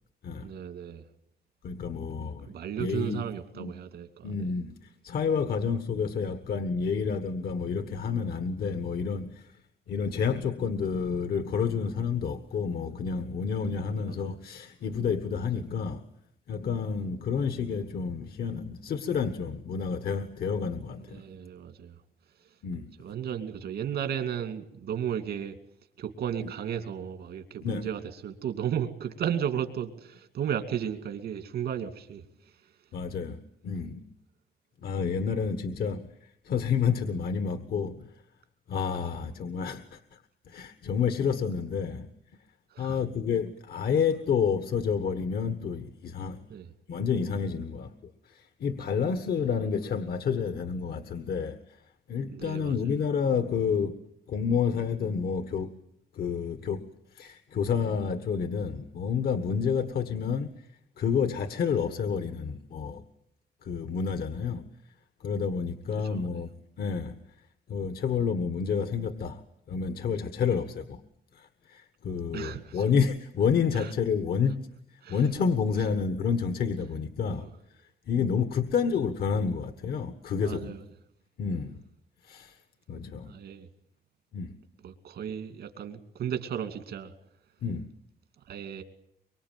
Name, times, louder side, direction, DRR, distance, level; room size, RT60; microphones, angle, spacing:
voice 1, 0.4-1.0 2.4-4.3 13.9-14.4 20.9-22.0 23.0-25.5 26.0-32.2 39.1-39.2 42.7-43.0 46.5-46.7 49.4-49.5 52.3-52.9 66.0-66.4 72.3-72.9 73.7-73.9 75.0-75.2 77.3-77.5 80.4-80.8 83.3-83.7 84.8-87.1 88.5-88.8, right 9 dB, 85° right, 2.5 m, -34 dB
voice 2, 1.6-2.5 2.8-3.2 3.5-3.7 4.2-9.6 9.9-16.0 16.5-21.2 22.6-22.9 27.6-27.9 32.9-34.0 34.8-38.1 38.7-40.2 40.5-42.1 42.8-46.4 46.9-47.9 48.2-51.6 52.1-54.0 54.3-55.7 56.1-56.8 57.1-60.7 61.0-63.0 63.6-64.7 65.2-67.2 67.7-69.4 69.7-71.0 71.3-74.6 75.1-77.8 78.1-80.7 81.4-81.8 82.2-82.6 82.9-83.3 84.3-84.5 87.6-87.9, left 6 dB, 70° left, 1.5 m, -29 dB
24.0 x 24.0 x 9.2 m
wide cardioid pair, 160°, 17 cm